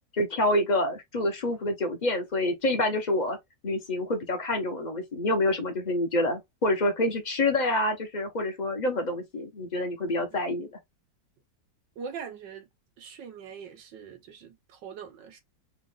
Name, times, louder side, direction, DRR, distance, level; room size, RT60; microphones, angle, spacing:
voice 1, 0.2-3.4 3.6-10.7, left 1 dB, 30° left, 0.9 m, -27 dB
voice 2, 12.0-12.7 13.0-15.4, right 6 dB, 75° right, 1.6 m, -42 dB
3.8 x 2.5 x 3.7 m
omnidirectional pair, 2.0 m